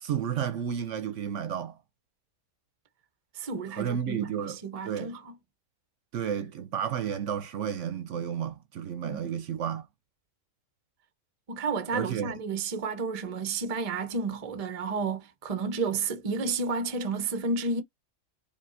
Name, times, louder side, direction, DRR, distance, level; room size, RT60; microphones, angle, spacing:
voice 1, 0.0-1.8 3.8-4.6 4.8-5.1 6.1-9.8 11.9-12.3, right 8 dB, 65° right, 0.9 m, -32 dB
voice 2, 3.4-5.4 9.0-9.3 11.5-17.8, right 4 dB, 40° right, 0.6 m, -31 dB
5.1 x 2.8 x 2.5 m
omnidirectional pair, 1.5 m